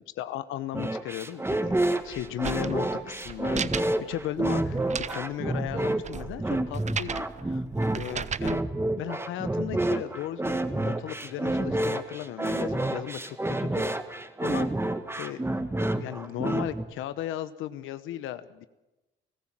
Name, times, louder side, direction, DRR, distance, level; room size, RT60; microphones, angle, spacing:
voice 1, 0.2-7.6 7.9-8.7 9.0-14.7 15.2-15.6 16.0-18.7, left 13 dB, 90° left, 13 dB, 1.0 m, -36 dB
sound 1, 0.7-16.8, right 1 dB, 10° right, 1.5 m, -29 dB
sound 2, 1.7-8.6, right 7 dB, 35° right, 0.7 m, -37 dB
29.0 x 14.5 x 7.5 m, 1.0 s
cardioid pair, 90°, 20 cm